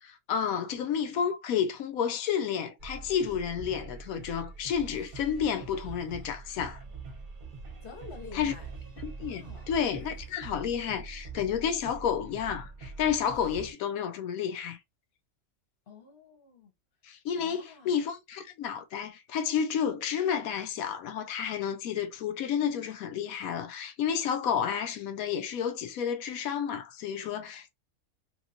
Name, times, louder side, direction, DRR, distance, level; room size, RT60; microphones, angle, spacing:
voice 1, 0.0-6.8 8.3-8.5 9.0-14.8 17.0-27.7, left 8 dB, 85° left, 1.1 m, -31 dB
sound 1, 2.8-13.7, right 4 dB, 45° right, 0.8 m, -44 dB
voice 2, 7.8-8.7 9.2-9.8 15.9-16.7 17.4-18.0, left 5 dB, 45° left, 0.9 m, -48 dB
3.1 x 2.6 x 2.6 m
omnidirectional pair, 1.5 m